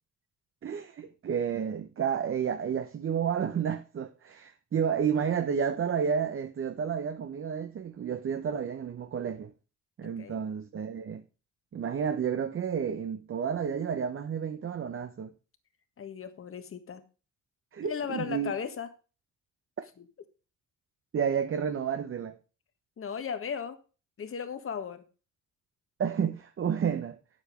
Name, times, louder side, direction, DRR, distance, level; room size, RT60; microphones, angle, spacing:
voice 1, 0.6-9.5 10.0-11.3 11.7-15.3 17.7-18.5 19.8-19.9 21.1-22.4 26.0-27.2, right 7 dB, 45° right, 0.9 m, -31 dB
voice 2, 16.0-17.0 17.8-18.9 23.0-23.8 24.2-25.0, left 7 dB, 45° left, 1.7 m, -36 dB
9.1 x 7.4 x 5.0 m
cardioid pair, 90°, 30 cm